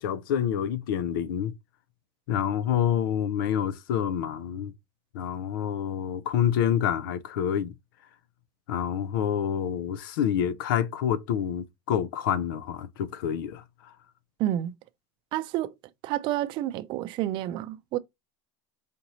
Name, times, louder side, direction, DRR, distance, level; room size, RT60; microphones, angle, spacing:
voice 1, 0.0-1.6 2.3-4.7 5.1-7.7 8.7-13.9, left 9 dB, 90° left, 0.5 m, -27 dB
voice 2, 14.4-14.7 15.3-15.7 16.0-18.0, right 13 dB, 45° right, 0.5 m, -29 dB
5.0 x 2.7 x 2.9 m
supercardioid pair, 145°, 11 cm